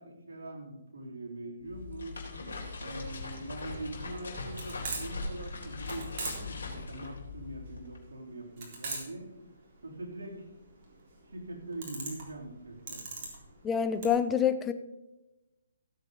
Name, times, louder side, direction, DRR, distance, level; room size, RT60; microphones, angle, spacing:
voice 1, 0.0-2.2 2.8-9.3 9.8-10.4 11.3-13.0, right 2 dB, 75° right, -1 dB, 3.7 m, -42 dB
sound 1, 1.6-8.0, left 3 dB, 75° left, 3.8 m, -40 dB
sound 2, 3.1-14.1, right 3 dB, 45° right, 3.8 m, -42 dB
voice 2, 13.6-14.7, left 8 dB, 15° left, 10 dB, 0.8 m, -26 dB
16.5 x 8.0 x 4.0 m, 0.98 s
hypercardioid pair, 140°, 0 cm